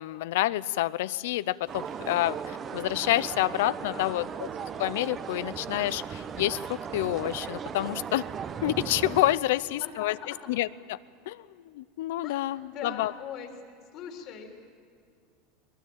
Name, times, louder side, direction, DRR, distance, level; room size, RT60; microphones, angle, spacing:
voice 1, 0.0-4.5 4.8-8.2 8.6-10.2 10.5-11.0 11.3-13.1, left 15 dB, 80° left, 18 dB, 0.6 m, -28 dB
sound 1, 1.6-9.1, right 3 dB, 80° right, 7.3 m, -60 dB
sound 2, 1.7-9.4, right 7 dB, 30° right, 0.9 m, -37 dB
voice 2, 3.7-4.3 9.5-10.4 12.2-13.5 13.9-14.6, left 7 dB, 50° left, 3 dB, 3.5 m, -41 dB
22.0 x 20.0 x 8.7 m, 2.3 s
supercardioid pair, 125°, 0 cm